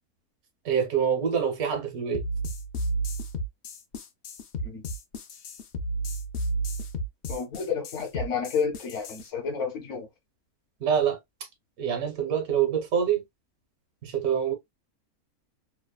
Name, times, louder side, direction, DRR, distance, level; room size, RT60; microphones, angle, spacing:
voice 1, 0.6-2.2 10.8-11.5 11.8-13.2 14.0-14.5, right 8 dB, 75° right, 1.3 m, -26 dB
sound 1, 2.1-9.2, right 2 dB, 75° left, 0.5 m, -32 dB
voice 2, 7.3-10.1, left 6 dB, 60° left, 1.1 m, -30 dB
3.0 x 2.1 x 2.2 m
omnidirectional pair, 1.6 m